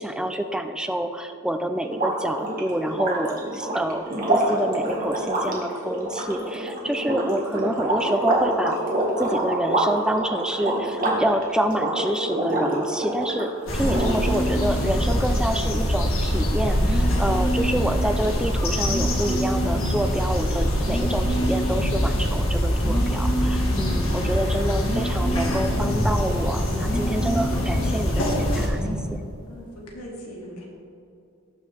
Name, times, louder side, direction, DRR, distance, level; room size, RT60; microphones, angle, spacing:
voice 1, 0.0-8.8 9.2-28.8 29.1-29.2, right 1 dB, 5° right, 7 dB, 0.3 m, -27 dB
sound 1, 1.9-13.5 13.8-14.6, right 1 dB, 40° right, 1.7 m, -26 dB
voice 2, 6.8-7.4 23.9-24.5 29.5-30.7, equal, 85° left, -3 dB, 2.5 m, -41 dB
sound 2, 13.7-28.7, equal, 65° left, 1.9 m, -24 dB
sound 3, 13.8-14.9 16.8-17.9 18.8-19.9 20.8-21.9 22.7-23.9 24.8-25.9 26.7-27.9 28.7-29.1, equal, 15° left, 1.9 m, -29 dB
19.0 x 6.4 x 3.4 m, 2.6 s
head